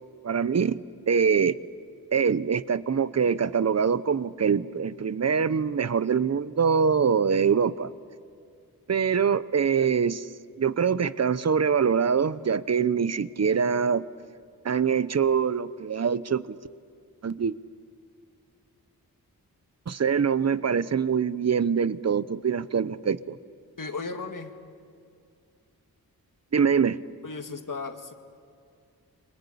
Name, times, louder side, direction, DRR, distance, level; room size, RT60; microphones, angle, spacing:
voice 1, 0.2-0.8 1.1-1.6 2.1-7.9 8.9-10.3 10.6-14.0 14.6-16.5 17.2-17.5 19.9-23.4 26.5-27.0, right 6 dB, 45° right, 16 dB, 0.8 m, -24 dB
voice 2, 23.8-24.5 27.2-28.1, left 4 dB, 55° left, 6 dB, 2.1 m, -35 dB
28.5 x 23.5 x 8.6 m, 2.3 s
wide cardioid pair, 80°, 37 cm